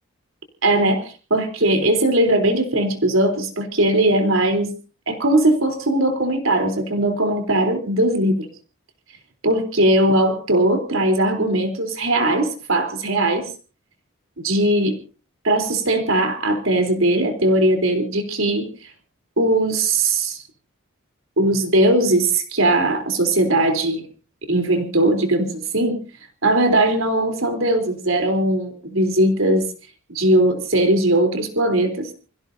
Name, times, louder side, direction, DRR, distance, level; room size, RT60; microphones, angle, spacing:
voice 1, 0.6-4.7 5.1-8.5 9.4-13.5 14.4-15.0 15.4-18.9 19.4-20.4 21.4-24.0 24.5-26.0 26.4-29.7 30.1-32.1, right 1 dB, 75° right, 5 dB, 3.7 m, -19 dB
28.5 x 16.5 x 2.8 m, 0.36 s
head